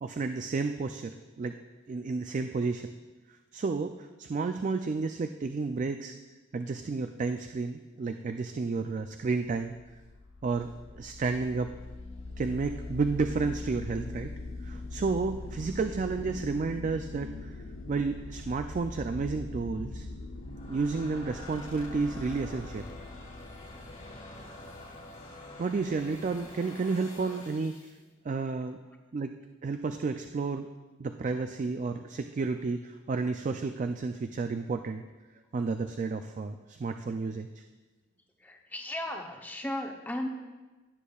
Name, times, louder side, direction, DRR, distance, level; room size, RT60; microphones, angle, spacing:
voice 1, 0.0-1.6 1.9-3.0 3.3-6.1 6.5-9.7 10.4-11.7 12.4-14.3 14.6-17.6 17.9-20.1 20.7-22.9 25.6-27.9 28.2-28.8 29.1-29.3 29.6-30.7 31.0-35.0 35.5-37.6, right 4 dB, 40° right, 7 dB, 0.3 m, -31 dB
sound 1, 9.2-26.5, left 2 dB, 85° left, 0.9 m, -42 dB
sound 2, 20.3-28.0, left 1 dB, 35° left, 1.8 m, -47 dB
voice 2, 38.4-40.3, left 1 dB, 10° left, 3 dB, 0.7 m, -35 dB
15.0 x 8.3 x 2.3 m, 1.2 s
head